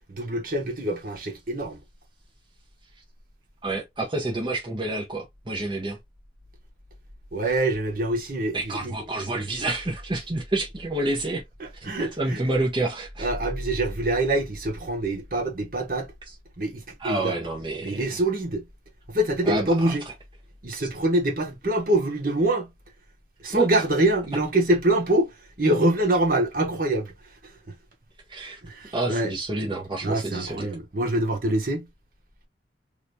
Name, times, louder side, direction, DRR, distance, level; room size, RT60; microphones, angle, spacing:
voice 1, 0.1-1.8 7.3-9.0 11.6-12.4 13.2-16.1 16.6-17.4 17.8-18.6 19.1-20.0 20.6-22.7 23.4-25.3 25.6-27.1 27.4-27.5 28.6-29.3 30.0-31.9, right 1 dB, 50° right, 1.2 m, -25 dB
voice 2, 3.6-6.0 8.5-11.4 11.8-13.3 16.3-16.4 17.0-18.1 19.4-19.9 20.8-20.9 23.5-23.7 28.3-28.6 28.9-30.7, right 2 dB, 25° right, 0.7 m, -28 dB
3.3 x 2.9 x 2.7 m
head